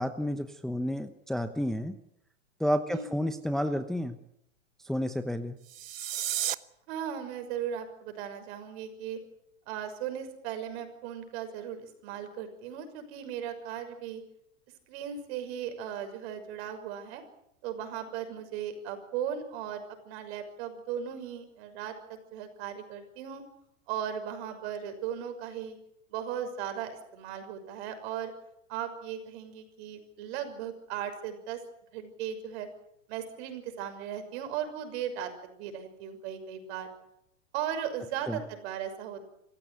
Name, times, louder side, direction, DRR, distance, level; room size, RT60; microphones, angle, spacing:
voice 1, 0.0-1.9 2.6-4.2 4.8-5.6 38.3-38.4, equal, ahead, 8 dB, 0.9 m, -30 dB
sound 1, 5.6-6.6, right 12 dB, 90° right, 1.2 m, -32 dB
voice 2, 6.9-9.2 9.7-14.2 14.9-17.2 17.6-23.4 23.9-25.8 26.1-28.3 28.7-31.6 31.9-32.7 33.1-36.9 37.5-39.2, right 9 dB, 55° right, 8 dB, 6.3 m, -37 dB
26.0 x 15.5 x 9.3 m, 0.76 s
hypercardioid pair, 135°, 38 cm